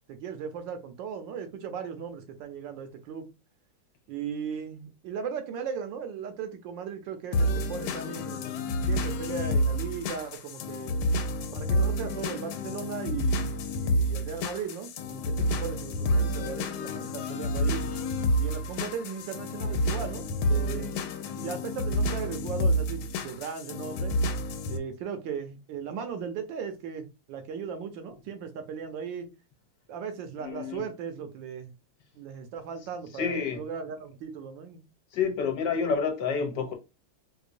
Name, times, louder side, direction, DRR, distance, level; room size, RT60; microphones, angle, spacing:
voice 1, 0.1-3.3 4.1-10.9 11.5-17.8 18.4-20.9 21.4-24.1 24.7-29.3 29.9-31.8 32.1-34.8, right 7 dB, 75° right, 1.3 m, -37 dB
sound 1, 7.3-24.8, equal, 90° left, 1.4 m, -29 dB
voice 2, 30.4-30.8 33.2-33.7 35.1-36.7, left 6 dB, 70° left, 1.3 m, -28 dB
4.6 x 2.2 x 2.5 m
omnidirectional pair, 2.1 m